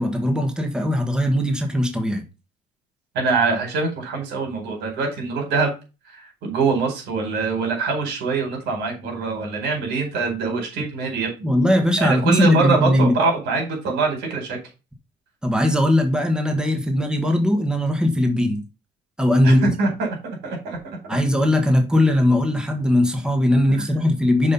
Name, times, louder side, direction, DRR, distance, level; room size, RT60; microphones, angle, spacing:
voice 1, 0.0-2.2 11.4-13.2 15.4-18.6 19.2-19.7 21.1-24.5, left 1 dB, 5° right, 1.5 m, -19 dB
voice 2, 3.1-5.7 6.1-11.5 12.0-14.6 19.4-20.8 23.8-23.9, right 4 dB, 85° right, 4.7 m, -23 dB
6.6 x 5.3 x 5.5 m
cardioid pair, 110°, 17 cm